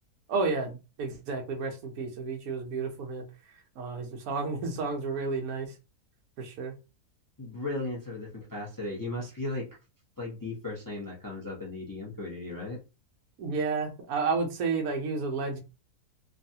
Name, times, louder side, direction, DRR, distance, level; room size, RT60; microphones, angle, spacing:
voice 1, 0.3-3.2 3.8-5.7 6.4-6.8 13.4-15.6, right 4 dB, 70° right, 4 dB, 1.2 m, -31 dB
voice 2, 7.4-9.7 10.2-12.8, left 2 dB, 25° left, -3 dB, 0.5 m, -36 dB
3.1 x 2.4 x 2.7 m, 0.29 s
omnidirectional pair, 1.7 m